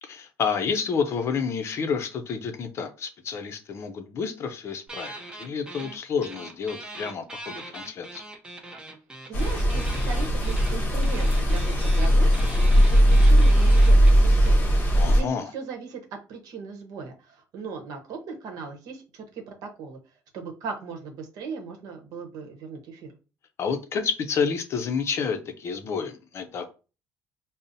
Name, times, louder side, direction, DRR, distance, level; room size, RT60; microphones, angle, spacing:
voice 1, 0.0-8.2 14.9-15.5 23.6-26.6, left 6 dB, 40° left, 0.5 m, -29 dB
sound 1, 4.9-6.0 6.2-14.5, right 2 dB, 15° right, 0.5 m, -41 dB
sound 2, 9.3-15.2, equal, 25° left, 0.9 m, -19 dB
voice 2, 9.3-20.0 20.3-23.1, right 5 dB, 70° right, 0.9 m, -38 dB
5.3 x 2.0 x 2.5 m
cardioid pair, 155°, 7 cm